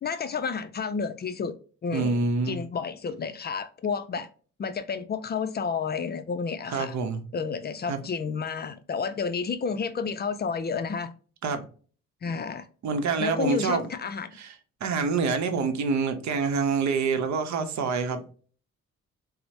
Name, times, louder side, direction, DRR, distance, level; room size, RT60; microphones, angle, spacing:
voice 1, 0.0-1.6 1.8-2.2 2.5-4.3 4.6-6.9 7.3-11.1 12.2-12.7 13.2-14.3, left 5 dB, 35° left, 0.4 m, -30 dB
voice 2, 1.9-2.6 6.7-7.2 7.9-8.0 11.4-11.6 12.8-13.9 14.4-14.6 14.8-18.2, right 4 dB, 65° right, 0.7 m, -26 dB
4.3 x 2.1 x 2.6 m
cardioid pair, 90°, 30 cm